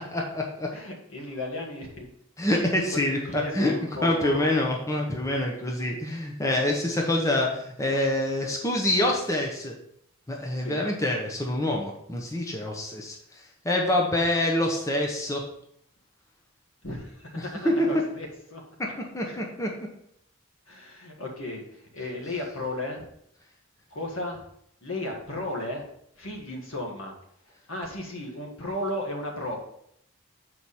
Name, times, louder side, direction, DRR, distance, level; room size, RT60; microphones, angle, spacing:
voice 1, 0.1-0.7 2.4-3.7 4.0-9.7 10.3-13.2 13.6-15.4 17.6-17.9 19.0-19.7, left 1 dB, 15° left, 0 dB, 0.8 m, -26 dB
voice 2, 0.7-2.1 2.4-4.5 10.6-10.8 16.8-18.6 19.2-19.4 20.7-23.0 23.9-24.4 24.8-25.9 26.2-27.1 27.7-29.6, left 1 dB, 75° left, 0 dB, 1.6 m, -35 dB
7.1 x 4.7 x 4.2 m, 0.72 s
head